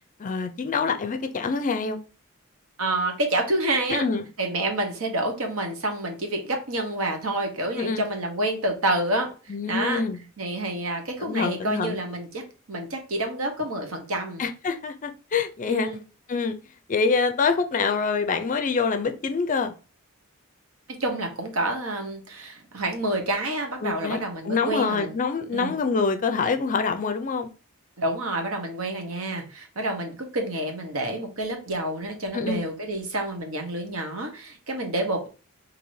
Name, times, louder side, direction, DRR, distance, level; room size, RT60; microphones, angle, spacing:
voice 1, 0.2-2.0 3.9-4.3 7.8-8.0 9.5-10.2 11.2-12.0 14.4-15.9 16.3-16.5 16.9-19.7 23.8-24.2 24.4-27.5 32.3-32.7, left 4 dB, 40° left, 0.4 m, -25 dB
voice 2, 2.8-4.0 4.4-10.0 10.4-12.4 12.7-14.4 15.6-16.0 21.0-25.1 25.5-25.7 28.0-35.3, right 1 dB, 75° right, 1.0 m, -28 dB
4.6 x 2.7 x 2.7 m
head